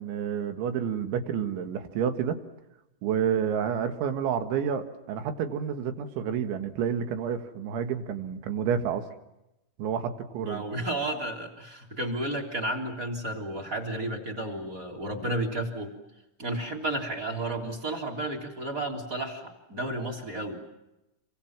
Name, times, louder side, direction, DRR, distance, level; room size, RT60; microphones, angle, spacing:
voice 1, 0.0-2.4 3.0-9.0 9.8-10.6, right 8 dB, 85° right, 8 dB, 4.0 m, -29 dB
voice 2, 10.4-15.9 16.4-20.6, right 1 dB, 20° right, 2 dB, 3.3 m, -32 dB
28.5 x 24.0 x 7.4 m, 0.94 s
omnidirectional pair, 5.2 m